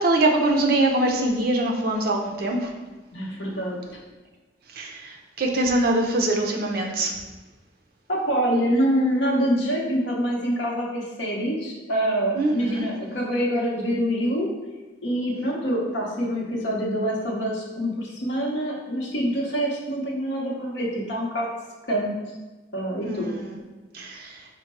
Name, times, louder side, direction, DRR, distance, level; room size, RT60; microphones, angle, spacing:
voice 1, 0.0-2.7 4.8-4.9 5.4-7.1 12.4-12.8 23.0-23.3 24.0-24.2, right 2 dB, 50° right, 1 dB, 0.5 m, -23 dB
voice 2, 3.1-3.8 8.1-14.5 15.0-21.5 21.9-22.1 22.7-23.3, equal, 70° left, -2 dB, 0.8 m, -25 dB
4.5 x 2.1 x 4.2 m, 1.2 s
head